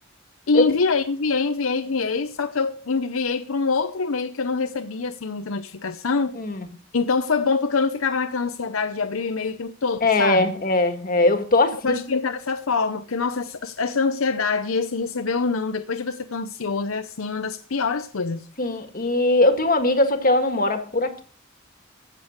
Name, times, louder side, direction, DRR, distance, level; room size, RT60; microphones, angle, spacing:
voice 1, 0.5-6.3 6.9-10.5 11.7-18.5, left 4 dB, 80° left, 0.8 m, -25 dB
voice 2, 6.3-6.7 10.0-12.0 18.6-21.2, left 2 dB, 45° left, 1.6 m, -20 dB
15.5 x 6.9 x 6.4 m
head